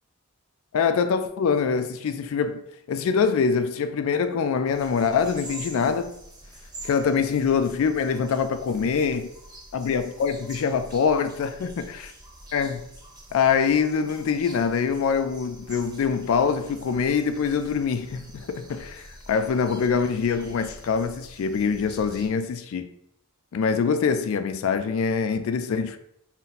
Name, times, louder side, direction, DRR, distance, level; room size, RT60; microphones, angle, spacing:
voice 1, 0.7-2.6 2.9-6.1 6.8-9.3 9.7-11.7 12.5-12.8 13.3-22.9 23.5-26.0, left 6 dB, 65° left, 0.3 m, -24 dB
sound 1, 4.7-22.3, right 1 dB, 20° right, 0.8 m, -46 dB
4.0 x 2.0 x 4.0 m
head